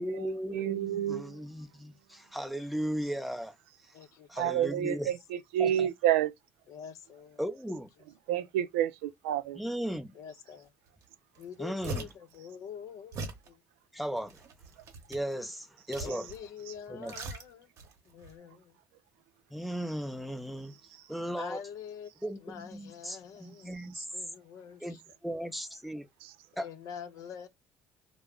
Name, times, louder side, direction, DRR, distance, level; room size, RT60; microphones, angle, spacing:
voice 1, 0.0-4.0 4.3-5.1 5.6-5.9 7.4-7.9 9.5-10.1 11.6-12.1 13.9-14.4 15.1-16.3 16.9-17.2 19.5-20.8 21.1-21.6 22.2-24.0 24.8-26.1 26.6-26.7, equal, ahead, 0.6 m, -36 dB
voice 2, 0.5-1.3 4.4-5.0 5.5-6.3 8.3-9.6, right 11 dB, 90° right, 0.4 m, -28 dB
voice 3, 3.9-4.6 6.7-7.4 10.2-10.7 11.4-13.6 16.0-17.7 18.1-18.8 21.4-22.1 22.4-23.8 24.1-24.8 26.5-27.5, left 7 dB, 65° left, 0.6 m, -45 dB
sound 1, 11.0-11.1 11.3-12.3 13.1-13.5 14.1-15.3 15.9-16.5 16.7-17.9 18.2-18.3, right 2 dB, 60° right, 0.8 m, -40 dB
2.2 x 2.0 x 3.5 m
supercardioid pair, 80°, 6 cm